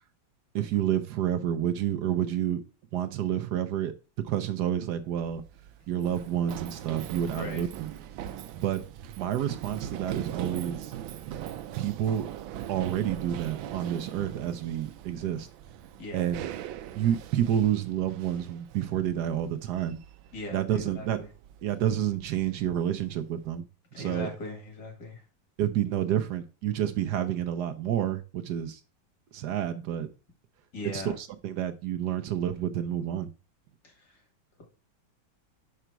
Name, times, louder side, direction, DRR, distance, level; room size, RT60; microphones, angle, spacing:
voice 1, 0.5-2.6 2.9-3.9 4.3-5.4 5.9-7.9 8.6-8.8 9.2-10.9 11.8-12.3 12.7-15.5 16.1-16.4 17.0-20.0 20.5-21.2 21.6-23.6 24.0-24.3 25.6-28.8 29.3-30.1 30.9-33.3, right 10 dB, 70° right, 1.1 m, -29 dB
Run, 5.0-23.6, right 11 dB, 90° right, 1.4 m, -41 dB
voice 2, 7.3-7.6 16.0-16.3 20.3-21.3 23.9-25.2 30.7-31.2 33.8-34.2, left 2 dB, 60° left, 2.4 m, -39 dB
5.6 x 5.0 x 4.5 m
omnidirectional pair, 2.1 m